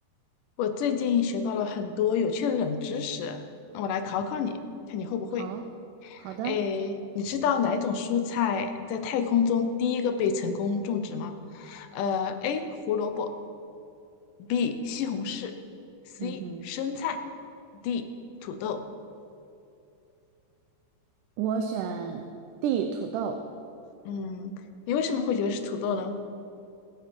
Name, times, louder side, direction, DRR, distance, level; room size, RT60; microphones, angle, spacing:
voice 1, 0.6-3.4 3.7-4.6 4.9-5.5 6.0-13.3 14.4-15.5 16.2-17.2 17.8-18.1 18.4-18.8 24.1-24.6 24.9-26.2, left 6 dB, 90° left, 8 dB, 2.5 m, -28 dB
voice 2, 6.2-6.6 16.2-16.7 21.4-22.3 22.6-23.4, right 7 dB, 85° right, 6 dB, 2.2 m, -30 dB
20.5 x 7.5 x 5.2 m, 2.7 s
omnidirectional pair, 3.6 m